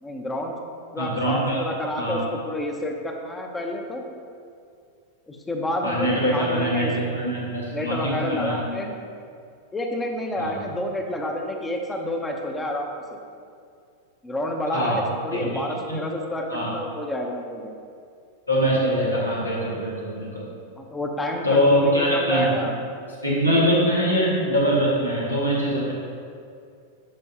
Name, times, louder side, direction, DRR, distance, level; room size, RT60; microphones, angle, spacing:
voice 1, 0.0-0.6 0.9-4.0 5.3-6.9 7.7-8.9 9.7-13.2 14.2-17.7 20.8-22.8, left 1 dB, 10° left, 2 dB, 0.9 m, -29 dB
voice 2, 1.0-1.6 2.0-2.2 5.8-8.6 10.3-10.6 14.7-15.0 15.3-15.5 15.9-16.0 16.5-16.7 18.5-20.5 21.4-22.5 23.2-25.9, equal, 85° left, -6 dB, 1.9 m, -23 dB
10.5 x 5.6 x 2.9 m, 2.4 s
figure-of-eight pair, 90°, 0 cm